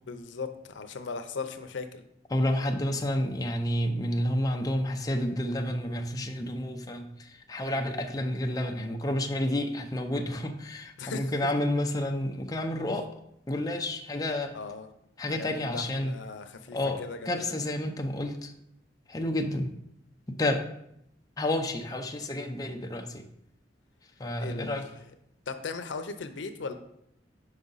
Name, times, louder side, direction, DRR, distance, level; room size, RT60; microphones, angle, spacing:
voice 1, 0.1-2.0 11.0-11.6 14.5-14.9 15.3-17.5 24.4-25.1 25.5-26.7, left 4 dB, 85° left, 8 dB, 0.6 m, -38 dB
voice 2, 2.3-7.1 7.5-13.1 13.5-14.5 15.2-16.1 16.7-17.0 17.3-18.5 19.1-19.7 20.4-20.6 21.4-23.1 24.2-24.8, left 1 dB, 20° left, 3 dB, 0.5 m, -30 dB
5.4 x 4.9 x 4.0 m, 0.76 s
head